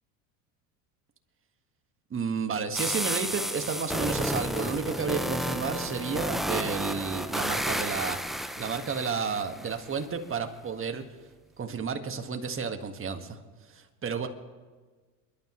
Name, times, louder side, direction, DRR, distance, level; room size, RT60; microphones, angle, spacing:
voice 1, 2.1-8.2 8.6-11.0 11.6-13.4 13.7-14.3, right 5 dB, 25° right, 6 dB, 1.7 m, -31 dB
sound 1, 2.7-9.7, equal, ahead, 0.6 m, -32 dB
27.5 x 12.0 x 3.1 m, 1.4 s
hypercardioid pair, 90°, 46 cm